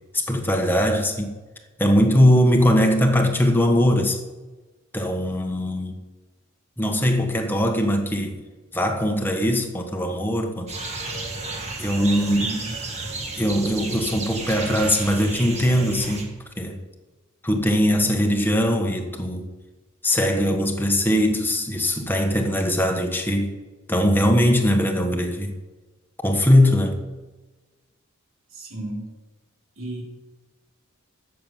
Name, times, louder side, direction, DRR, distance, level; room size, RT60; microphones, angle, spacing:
voice 1, 0.1-1.3 1.8-4.2 4.9-5.9 6.8-8.4 8.7-10.7 11.8-12.6 13.4-16.3 16.6-16.8 17.4-19.5 20.0-23.5 23.9-25.5 26.2-27.0, equal, 10° left, 1.3 m, -21 dB
sound 1, 10.7-16.2, right 3 dB, 30° right, 2.1 m, -32 dB
voice 2, 12.3-12.8 28.5-29.0 29.8-30.0, right 1 dB, 65° right, 3.4 m, -33 dB
14.0 x 6.9 x 7.3 m
head